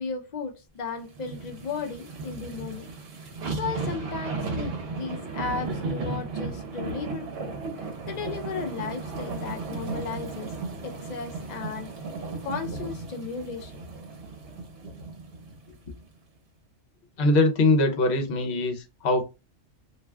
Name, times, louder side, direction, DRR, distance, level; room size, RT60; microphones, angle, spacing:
voice 1, 0.0-2.9 3.5-7.5 8.0-10.5 10.8-11.9 12.4-13.7 14.8-14.9 15.7-15.9, left 5 dB, 50° left, 0.5 m, -35 dB
sound 1, 1.1-15.6 16.0-16.1, right 3 dB, 60° right, 0.9 m, -35 dB
voice 2, 17.2-19.2, left 2 dB, 65° left, 1.0 m, -22 dB
2.5 x 2.3 x 3.2 m
omnidirectional pair, 1.2 m